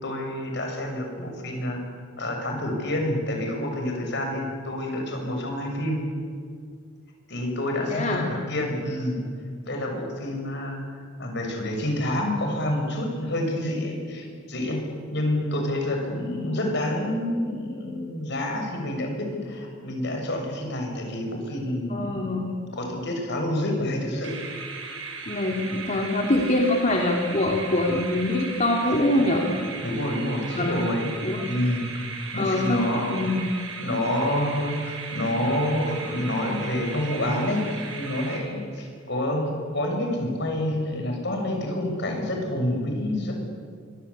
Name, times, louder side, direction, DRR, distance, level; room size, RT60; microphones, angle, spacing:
voice 1, 0.0-1.8 2.2-6.0 7.3-9.2 9.7-10.8 11.2-14.9 15.1-22.4 22.7-24.4 29.2-29.5 29.8-31.1 31.4-33.1 33.8-43.4, left 1 dB, 60° left, 3 dB, 7.0 m, -28 dB
voice 2, 7.9-8.3 21.9-22.6 25.3-29.5 30.5-30.8 31.2-31.5 32.3-33.4, left 1 dB, 40° left, 0 dB, 2.7 m, -24 dB
sound 1, 24.2-38.9, right 4 dB, 85° right, 6.5 m, -37 dB
26.0 x 24.5 x 8.6 m, 2.1 s
head